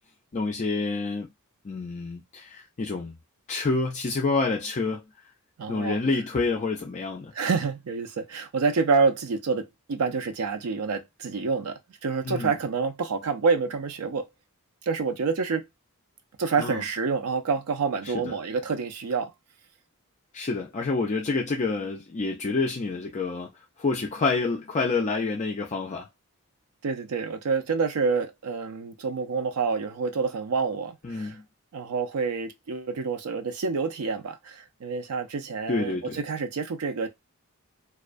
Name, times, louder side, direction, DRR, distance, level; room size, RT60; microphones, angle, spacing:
voice 1, 0.3-1.3 1.6-3.2 3.5-5.0 5.7-7.3 12.2-12.5 16.6-16.8 18.3-18.4 20.3-23.5 23.8-26.1 31.0-31.4 35.7-36.2, left 3 dB, 30° left, 0.4 m, -28 dB
voice 2, 5.6-6.0 7.3-14.3 14.9-15.6 16.4-19.3 26.8-31.4 31.7-37.1, right 5 dB, 80° right, 0.5 m, -27 dB
2.3 x 2.2 x 2.4 m
head